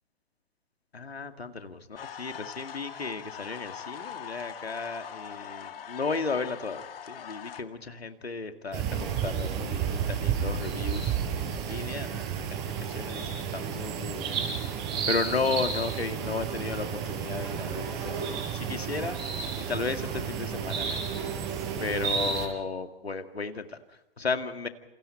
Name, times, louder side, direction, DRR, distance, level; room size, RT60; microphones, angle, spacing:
voice 1, 0.9-14.5 15.1-19.4 19.7-21.0 21.8-24.7, left 4 dB, 90° left, 7 dB, 2.2 m, -34 dB
sound 1, 2.0-7.6, left 8 dB, 65° left, 2.1 m, -42 dB
sound 2, 8.7-22.5, right 7 dB, 35° right, 6.0 m, -31 dB
28.5 x 28.5 x 4.4 m, 0.98 s
figure-of-eight pair, 115°, 30 cm